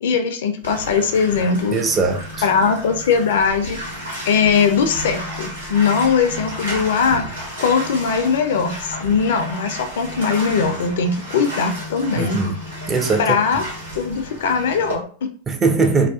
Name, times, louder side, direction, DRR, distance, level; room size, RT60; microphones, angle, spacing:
voice 1, 0.0-1.8 2.4-3.8 4.3-7.2 7.6-12.4 13.2-13.6 13.9-15.3, left 6 dB, 60° left, 0.4 m, -20 dB
Bathtub (filling or washing), 0.6-14.9, equal, 80° right, 1.2 m, -32 dB
voice 2, 1.7-2.4 12.2-12.6 12.9-13.3 15.5-16.1, right 4 dB, 20° right, 0.4 m, -20 dB
2.4 x 2.3 x 2.3 m
figure-of-eight pair, 90°, 0 cm